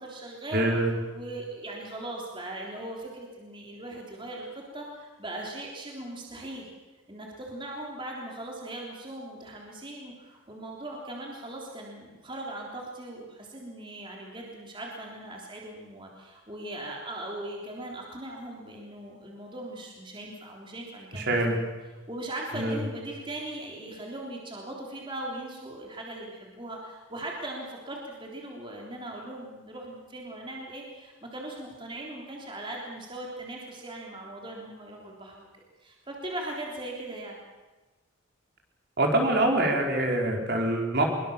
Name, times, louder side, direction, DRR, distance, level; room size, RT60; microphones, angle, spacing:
voice 1, 0.0-6.7 7.1-21.6 22.1-35.5 35.8-37.4, right 1 dB, 25° right, -1 dB, 3.5 m, -39 dB
voice 2, 0.5-0.9 21.1-21.5 22.5-22.8 39.0-41.0, right 1 dB, 50° right, 1 dB, 4.6 m, -25 dB
24.0 x 23.0 x 7.2 m, 1.2 s
head